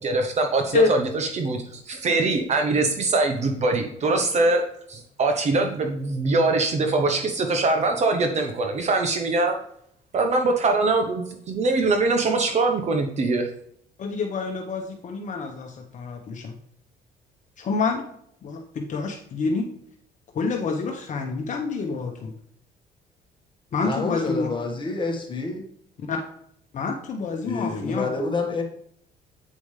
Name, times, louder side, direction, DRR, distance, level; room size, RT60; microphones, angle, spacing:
voice 1, 0.0-4.6 4.9-9.6 10.1-13.5, right 3 dB, 40° right, 1.0 m, -23 dB
voice 2, 14.0-16.5 17.6-18.0 18.4-19.7 20.3-22.3 23.7-24.5 26.0-26.2 26.7-28.1, left 4 dB, 45° left, 1.0 m, -27 dB
voice 3, 23.8-25.7 27.4-28.6, left 3 dB, 30° left, 1.6 m, -28 dB
8.5 x 5.1 x 3.3 m
cardioid pair, 110°, 17 cm